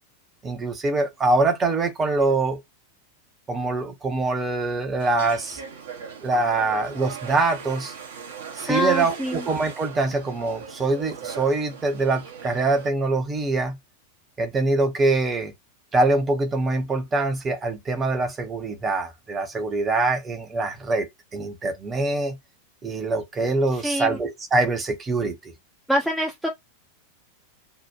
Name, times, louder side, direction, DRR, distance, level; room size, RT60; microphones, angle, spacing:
voice 1, 0.4-2.6 3.5-5.6 6.2-7.9 8.5-13.8 14.4-15.5 15.9-22.4 22.8-25.5, right 3 dB, 20° right, 0.8 m, -24 dB
sound 1, 5.0-12.9, right 6 dB, 60° right, 0.7 m, -39 dB
voice 2, 8.7-9.4 23.8-24.2 25.9-26.5, equal, ahead, 0.4 m, -25 dB
2.8 x 2.1 x 2.3 m
figure-of-eight pair, 90°, 0 cm